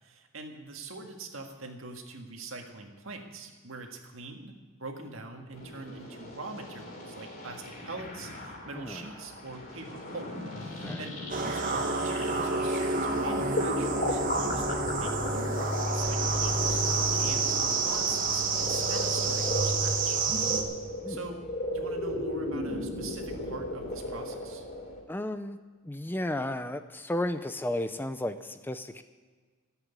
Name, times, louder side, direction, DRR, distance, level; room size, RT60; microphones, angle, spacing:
voice 1, 0.0-10.3 10.6-20.2 21.1-21.4 21.7-24.6, right 3 dB, 75° right, 3 dB, 1.8 m, -43 dB
sound 1, 5.5-25.0, left 1 dB, 45° left, 3.5 m, -36 dB
voice 2, 8.7-9.1 10.8-11.1 21.0-21.2 25.1-25.6 25.8-29.0, left 1 dB, 10° left, 10 dB, 0.4 m, -33 dB
sound 2, 11.3-20.6, right 3 dB, 40° right, 1.3 m, -28 dB
13.5 x 8.1 x 9.5 m, 1.5 s
head